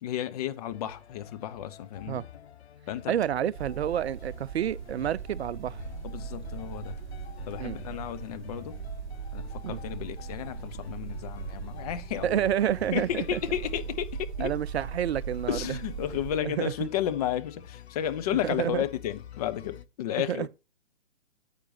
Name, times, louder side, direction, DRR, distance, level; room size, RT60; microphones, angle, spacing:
voice 1, 0.0-2.2 2.9-3.1 6.0-7.0 7.5-8.8 9.3-12.4 12.9-14.5 15.5-20.5, left 11 dB, 35° left, 0.8 m, -32 dB
sound 1, 0.7-19.9, left 8 dB, 60° left, 0.8 m, -48 dB
voice 2, 3.1-5.8 7.6-7.8 9.6-9.8 12.2-13.4 14.4-15.8 16.4-16.9 18.4-18.8 20.2-20.5, right 10 dB, 60° right, 0.5 m, -29 dB
sound 2, 3.5-16.4, right 6 dB, 40° right, 1.2 m, -39 dB
9.2 x 8.6 x 2.8 m
figure-of-eight pair, 130°, 36 cm